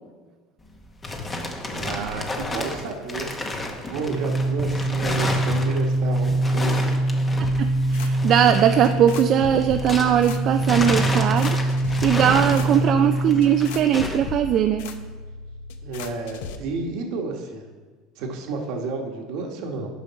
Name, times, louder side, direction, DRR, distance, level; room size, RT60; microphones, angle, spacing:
sound 1, 0.6-10.3 10.6-14.3, left 2 dB, 20° left, 1.0 m, -32 dB
voice 1, 1.7-6.9 8.7-8.8 12.6-12.9 15.8-17.6 18.2-19.9, right 3 dB, 65° right, 3 dB, 1.2 m, -31 dB
sound 2, 4.1-13.9, right 2 dB, 10° right, 0.9 m, -24 dB
sound 3, 7.4-16.6, left 3 dB, 85° left, 0.6 m, -36 dB
voice 2, 7.4-11.6 12.0-14.9, right 9 dB, 50° right, 7 dB, 0.3 m, -20 dB
7.0 x 5.2 x 5.7 m, 1.4 s
supercardioid pair, 115°, 0 cm